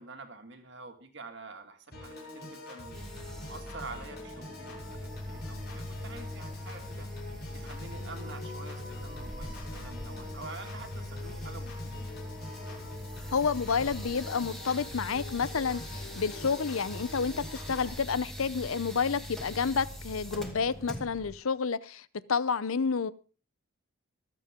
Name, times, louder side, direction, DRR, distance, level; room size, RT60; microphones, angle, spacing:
voice 1, 0.0-3.0 3.4-7.1 7.5-11.9, right 3 dB, 55° right, 2.2 m, -47 dB
Piano / Organ, 1.9-17.9, left 1 dB, 50° left, 7.8 m, -45 dB
sound 1, 2.9-21.4, left 1 dB, ahead, 2.3 m, -42 dB
sound 2, 9.0-11.3, equal, 25° left, 4.7 m, -48 dB
voice 2, 13.3-23.1, left 5 dB, 75° left, 0.6 m, -30 dB
24.5 x 8.4 x 3.7 m
head